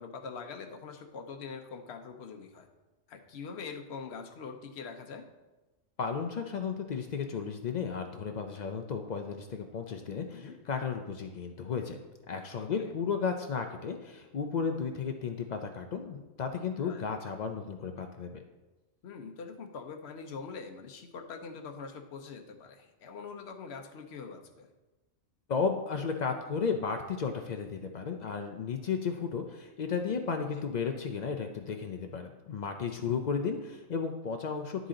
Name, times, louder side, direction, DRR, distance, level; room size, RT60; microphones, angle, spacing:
voice 1, 0.0-2.7 3.1-5.2 10.3-10.6 12.6-12.9 16.8-17.1 19.0-24.7, left 5 dB, 55° left, 4 dB, 1.0 m, -43 dB
voice 2, 6.0-12.0 12.3-18.4 25.5-34.9, left 5 dB, 90° left, 5 dB, 0.3 m, -34 dB
11.0 x 4.0 x 3.8 m, 1.1 s
omnidirectional pair, 1.4 m